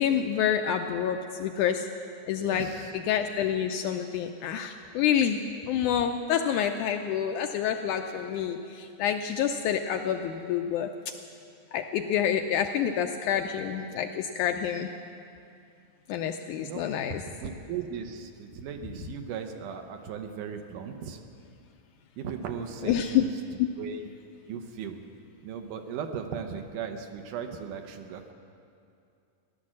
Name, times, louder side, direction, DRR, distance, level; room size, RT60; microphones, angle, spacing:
voice 1, 0.0-1.9 2.3-2.7 2.9-5.4 5.7-10.9 11.7-14.9 16.1-17.2 22.8-23.3 23.6-23.7, left 9 dB, 80° left, 5 dB, 1.8 m, -28 dB
voice 2, 2.4-2.9 16.6-16.8 17.4-21.2 22.2-23.3 23.8-24.1 24.5-25.0 25.4-28.3, right 7 dB, 75° right, 6 dB, 2.3 m, -37 dB
16.0 x 11.0 x 7.4 m, 2.5 s
omnidirectional pair, 4.0 m